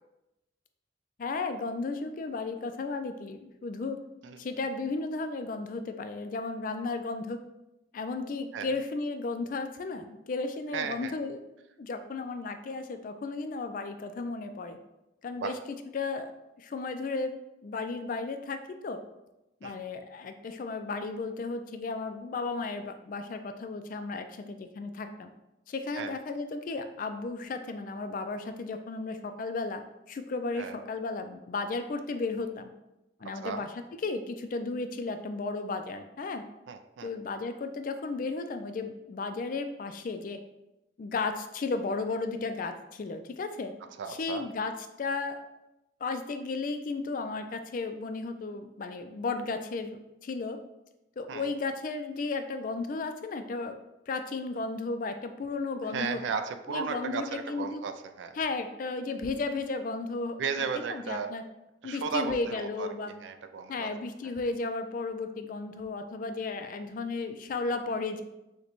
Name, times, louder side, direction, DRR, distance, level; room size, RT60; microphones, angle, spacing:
voice 1, 1.2-4.0 4.4-7.4 7.9-11.4 11.8-14.8 15.2-15.6 15.9-16.3 16.6-19.0 19.6-25.3 25.7-29.8 30.1-32.7 33.2-33.7 34.0-36.4 37.0-40.4 41.0-43.7 44.1-44.7 45.0-45.4 46.0-50.6 51.2-53.8 54.1-56.2 56.7-57.8 58.4-60.4 60.9-61.4 61.8-63.1 63.7-68.2, left 3 dB, 45° left, 8 dB, 0.3 m, -34 dB
voice 2, 10.7-11.1 15.4-15.5 19.6-19.8 26.0-26.2 30.5-30.8 33.4-33.7 36.7-37.1 44.0-44.5 51.3-51.5 55.9-58.4 60.4-61.3 61.8-63.9 64.2-64.3, right 5 dB, 75° right, 8 dB, 0.3 m, -35 dB
6.4 x 2.2 x 3.0 m, 0.94 s
head